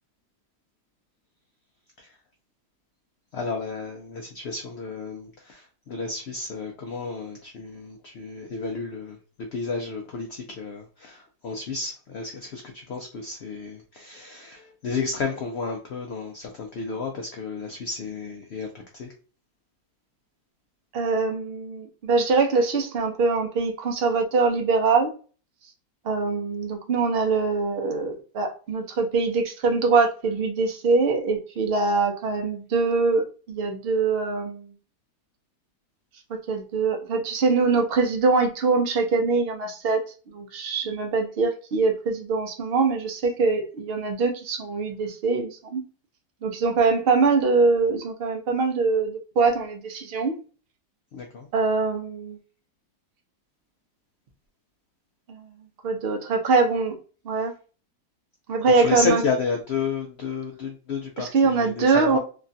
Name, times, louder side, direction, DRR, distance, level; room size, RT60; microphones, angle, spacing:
voice 1, 3.3-19.1 51.1-51.5 58.6-62.2, left 4 dB, 85° left, 2 dB, 0.5 m, -32 dB
voice 2, 20.9-25.1 26.0-34.7 36.3-40.0 40.3-45.8 46.4-50.4 51.5-52.4 55.3-55.5 55.8-57.0 57.2-57.5 58.5-59.2 61.2-62.2, right 4 dB, 60° right, 3 dB, 0.6 m, -23 dB
3.2 x 2.2 x 2.6 m, 0.37 s
omnidirectional pair, 1.8 m